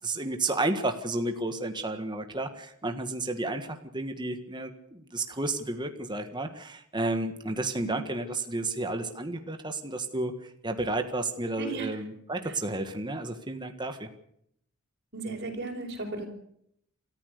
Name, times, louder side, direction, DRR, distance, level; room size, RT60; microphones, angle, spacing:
voice 1, 0.0-10.3 10.6-14.1, right 2 dB, 20° right, 6 dB, 1.7 m, -32 dB
voice 2, 11.6-11.9 12.4-12.6 15.1-16.3, right 3 dB, 50° right, -2 dB, 5.4 m, -35 dB
27.5 x 14.5 x 6.7 m, 0.71 s
head